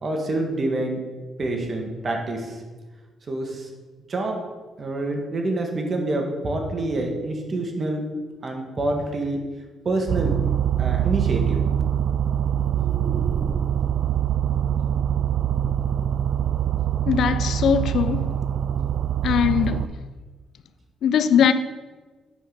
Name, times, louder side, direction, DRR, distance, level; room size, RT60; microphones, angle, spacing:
voice 1, 0.0-1.1 1.4-2.6 3.3-3.7 4.1-4.4 4.8-8.1 8.4-9.4 9.8-10.4 10.8-11.6, right 2 dB, 40° right, 1.5 m, -27 dB
sound 1, 10.1-19.9, right 9 dB, 70° right, 0.3 m, -24 dB
voice 2, 17.1-18.4 19.2-19.9 21.0-21.5, left 8 dB, 70° left, 0.4 m, -20 dB
8.9 x 5.0 x 3.9 m
cardioid pair, 90°, 0 cm